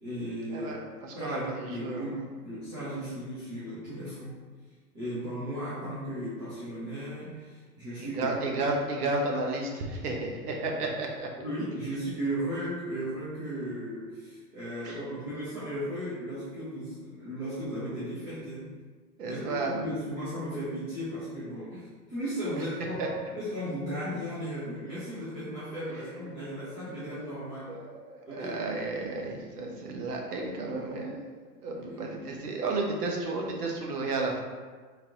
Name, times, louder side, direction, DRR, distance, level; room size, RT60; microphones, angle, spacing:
voice 1, 0.0-0.7 1.1-4.4 4.9-8.6 10.7-10.8 11.4-18.7 19.2-27.8 28.3-28.6 31.7-32.0, equal, 10° right, -12 dB, 0.3 m, -36 dB
voice 2, 0.5-2.1 8.0-11.3 14.8-15.0 19.2-20.1 23.0-23.1 27.7-31.2 31.6-34.4, right 2 dB, 70° right, 0 dB, 1.0 m, -32 dB
3.8 x 2.8 x 3.5 m, 1.5 s
hypercardioid pair, 115°, 48 cm